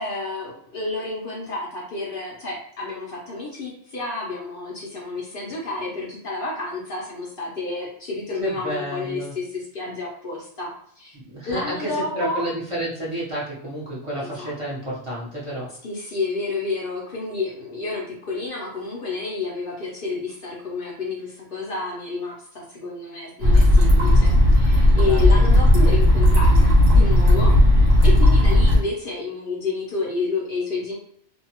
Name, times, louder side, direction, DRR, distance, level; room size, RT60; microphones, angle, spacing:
voice 1, 0.0-11.2 11.4-12.5 14.2-14.5 15.8-27.5 28.0-31.0, left 3 dB, 55° left, -3 dB, 0.8 m, -30 dB
voice 2, 8.4-9.3 11.1-15.7 25.1-25.4, right 1 dB, 30° right, -8 dB, 0.8 m, -30 dB
sound 1, 23.4-28.8, left 1 dB, 60° right, 1.1 m, -15 dB
2.6 x 2.3 x 2.8 m, 0.65 s
omnidirectional pair, 1.2 m